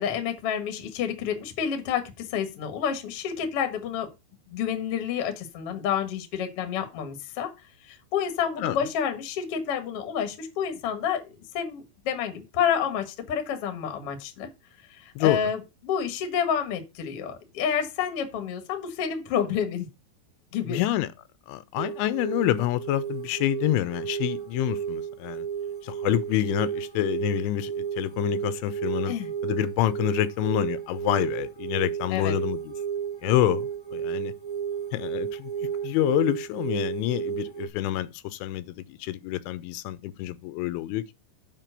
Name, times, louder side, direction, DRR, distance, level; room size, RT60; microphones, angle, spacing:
voice 1, 0.0-4.1 4.5-7.5 7.8-11.3 11.5-14.5 14.8-19.9 20.5-20.8 29.0-29.3 32.1-32.3, left 8 dB, 70° left, 1.4 m, -29 dB
voice 2, 20.7-21.1 21.5-25.5 25.8-29.2 29.4-32.7 33.2-34.3 34.9-35.5 35.8-41.1, left 15 dB, 85° left, 2.9 m, -27 dB
sound 1, 21.8-37.7, right 8 dB, 40° left, 0.7 m, -32 dB
7.5 x 5.1 x 6.6 m
omnidirectional pair, 5.4 m